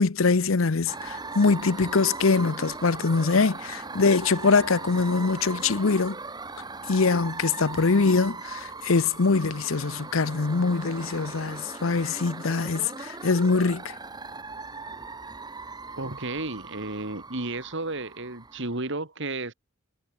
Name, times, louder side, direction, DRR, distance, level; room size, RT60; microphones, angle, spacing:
voice 1, 0.0-6.2 6.9-14.0, left 4 dB, 70° left, 0.8 m, -23 dB
sound 1, 0.9-18.9, right 3 dB, 20° right, 1.2 m, -39 dB
voice 2, 16.0-19.5, right 2 dB, 60° right, 3.1 m, -33 dB
head